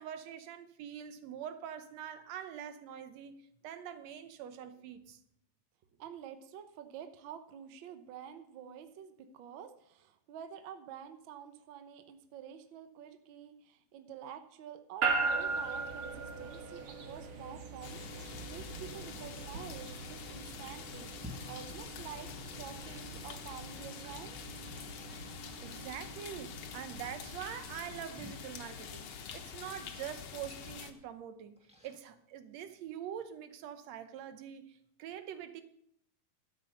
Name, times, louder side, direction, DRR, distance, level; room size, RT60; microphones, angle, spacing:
voice 1, 0.0-3.4 3.6-5.2 25.6-31.6 31.8-35.6, right 9 dB, 70° right, 1.8 m, -44 dB
voice 2, 6.0-21.1 21.5-22.3 22.6-24.4, right 9 dB, 85° right, 1.0 m, -48 dB
sound 1, 15.0-29.3, right 4 dB, 50° right, 1.9 m, -40 dB
sound 2, 17.8-30.9, left 7 dB, 65° left, 2.0 m, -46 dB
Splash splatter, 20.4-33.1, left 1 dB, 5° right, 0.9 m, -57 dB
12.5 x 7.7 x 6.7 m
omnidirectional pair, 3.6 m